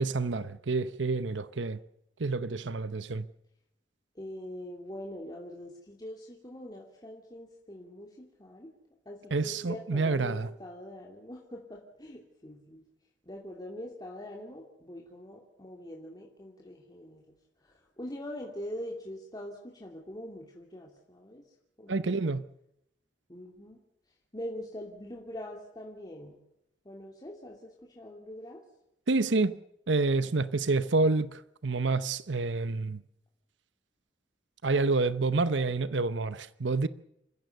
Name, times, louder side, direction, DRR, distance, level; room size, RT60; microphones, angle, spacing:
voice 1, 0.0-1.8 2.2-3.3 9.3-10.5 21.9-22.4 29.1-29.6 29.9-33.0 34.6-36.9, right 3 dB, 80° right, 0.8 m, -28 dB
voice 2, 4.1-8.7 9.0-12.8 13.3-17.2 17.6-21.5 21.8-22.2 23.3-23.8 24.3-26.4 26.8-28.6, left 1 dB, 20° left, 2.9 m, -43 dB
28.0 x 15.5 x 6.7 m
head